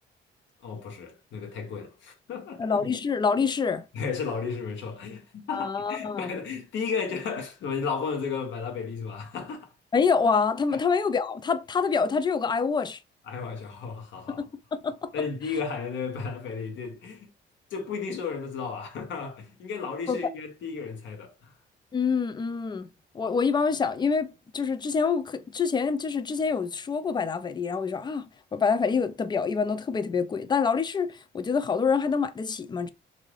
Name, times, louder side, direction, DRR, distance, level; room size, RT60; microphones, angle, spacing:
voice 1, 0.6-2.9 3.9-9.7 10.7-10.8 13.3-14.5 15.1-17.3 17.7-21.5 23.2-23.3, left 5 dB, 70° left, 1.0 m, -34 dB
voice 2, 2.6-3.8 5.5-6.3 9.9-13.0 14.3-15.1 20.1-20.2 21.9-22.9 23.1-32.9, left 5 dB, 20° left, 0.3 m, -26 dB
2.6 x 2.4 x 3.2 m
cardioid pair, 90°, 20 cm